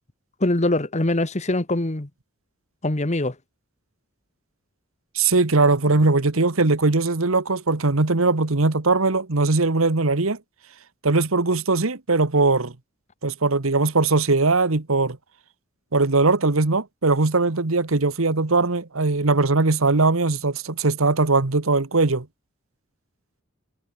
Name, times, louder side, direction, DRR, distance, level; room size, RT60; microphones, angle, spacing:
voice 1, 0.4-2.1 2.8-3.3, left 2 dB, 35° left, 1.4 m, -23 dB
voice 2, 5.1-10.4 11.0-12.7 13.2-15.2 15.9-22.3, right 3 dB, 85° right, 1.4 m, -20 dB
head